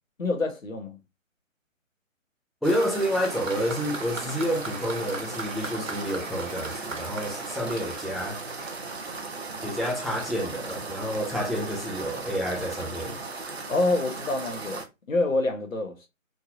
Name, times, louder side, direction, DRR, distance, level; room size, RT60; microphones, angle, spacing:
voice 1, 0.2-1.0 13.7-16.1, left 2 dB, 75° left, 1.1 m, -27 dB
voice 2, 2.6-8.4 9.6-13.2, equal, ahead, 0.4 m, -29 dB
sound 1, 2.6-14.8, right 3 dB, 50° right, 0.7 m, -37 dB
Applause, 2.7-9.2 10.1-10.2, right 3 dB, 70° right, 1.3 m, -41 dB
3.7 x 2.6 x 2.6 m
figure-of-eight pair, 155°, 40 cm